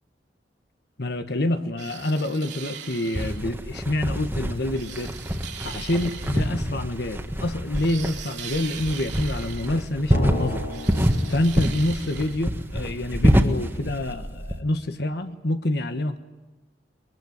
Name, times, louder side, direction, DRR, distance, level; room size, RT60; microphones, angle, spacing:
voice 1, 1.0-5.1 5.6-10.6 11.3-16.2, left 1 dB, 60° left, 8 dB, 1.4 m, -27 dB
sound 1, 1.8-3.4 4.7-6.5 7.7-9.8 10.7-12.4, right 9 dB, 70° right, 3.0 m, -40 dB
sound 2, 3.1-14.6, equal, 10° right, 1.6 m, -26 dB
Drum, 10.1-12.7, left 1 dB, 75° left, 5.6 m, -36 dB
23.0 x 22.5 x 9.4 m, 1.1 s
head